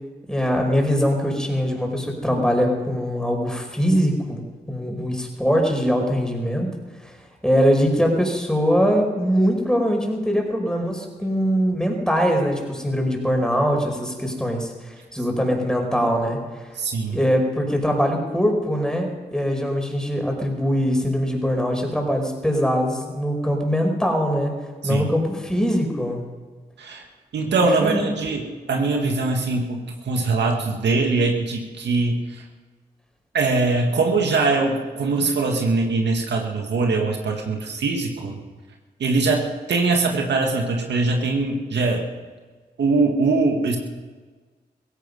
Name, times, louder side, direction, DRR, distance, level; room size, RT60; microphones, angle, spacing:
voice 1, 0.3-6.7 7.0-7.1 7.4-16.7 17.1-24.5 24.8-26.2 27.8-28.1, equal, 5° left, 2 dB, 5.2 m, -22 dB
voice 2, 16.8-17.2 24.8-25.1 26.8-27.0 27.3-32.4 33.3-38.4 39.0-42.1 42.8-43.8, right 3 dB, 80° right, 2 dB, 1.9 m, -22 dB
16.5 x 15.5 x 5.5 m, 1.4 s
supercardioid pair, 45°, 18 cm